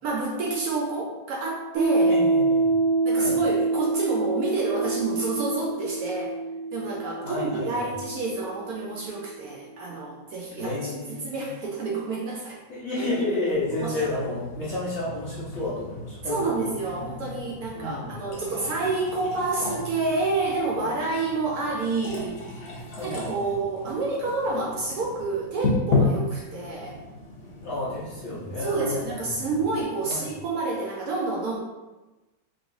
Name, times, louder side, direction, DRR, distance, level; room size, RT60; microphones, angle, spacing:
voice 1, 0.0-2.2 3.0-6.4 6.7-12.6 13.8-14.1 16.2-22.7 23.0-27.0 28.5-31.6, right 3 dB, 75° right, -3 dB, 0.8 m, -29 dB
Piano, 1.8-9.0, right 3 dB, 55° right, 1.2 m, -26 dB
voice 2, 2.1-2.7 3.1-3.4 7.2-7.9 10.6-11.5 12.7-16.6 17.7-18.2 20.8-20.9 22.9-23.4 27.6-29.5 30.0-30.3, left 2 dB, 50° left, -9 dB, 0.9 m, -31 dB
sound 1, 13.5-29.8, left 3 dB, 90° left, 0.5 m, -34 dB
3.8 x 2.9 x 2.6 m, 1.1 s
omnidirectional pair, 2.1 m